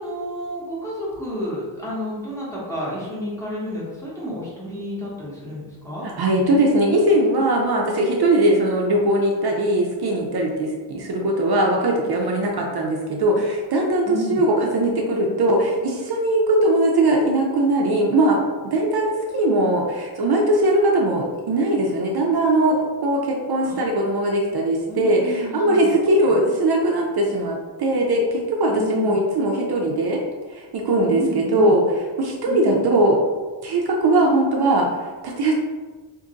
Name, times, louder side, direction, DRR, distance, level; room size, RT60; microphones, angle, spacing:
voice 1, 0.0-6.1 14.1-14.4 23.6-23.8 24.9-25.9 26.3-26.4 28.7-29.2 31.1-31.7 32.4-33.0, left 1 dB, 5° left, -7 dB, 0.8 m, -30 dB
voice 2, 6.0-30.2 30.5-31.8 32.2-33.2 33.6-35.5, right 1 dB, 55° right, 0 dB, 0.5 m, -20 dB
2.6 x 2.5 x 3.8 m, 1.4 s
wide cardioid pair, 170°, 46 cm